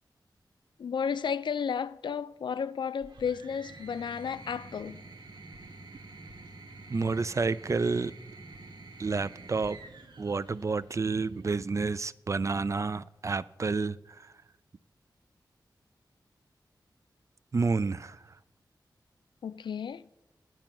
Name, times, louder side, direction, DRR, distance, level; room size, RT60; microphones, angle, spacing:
voice 1, 0.8-5.0 19.4-20.0, left 7 dB, 90° left, 0.4 m, -33 dB
sound 1, 3.0-11.4 12.6-13.3, right 2 dB, 75° right, 1.1 m, -49 dB
voice 2, 6.9-8.1 9.0-9.8 10.2-14.3 17.5-18.2, right 4 dB, 40° right, 0.3 m, -29 dB
9.3 x 8.8 x 5.9 m
wide cardioid pair, 85°, 8 cm